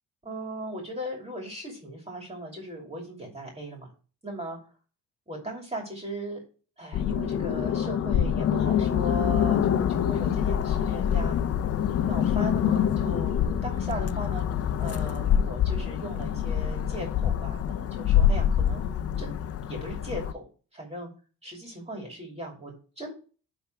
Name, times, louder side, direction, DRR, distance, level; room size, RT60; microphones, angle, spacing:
voice 1, 0.2-3.9 4.2-4.6 5.3-6.4 6.8-11.4 12.0-14.4 14.8-19.3 19.7-21.1 21.4-23.1, right 1 dB, 20° right, 1 dB, 2.5 m, -38 dB
sound 1, 6.9-20.3, left 9 dB, 50° left, 0.5 m, -25 dB
10.5 x 3.5 x 4.6 m, 0.37 s
cardioid pair, 120°, 31 cm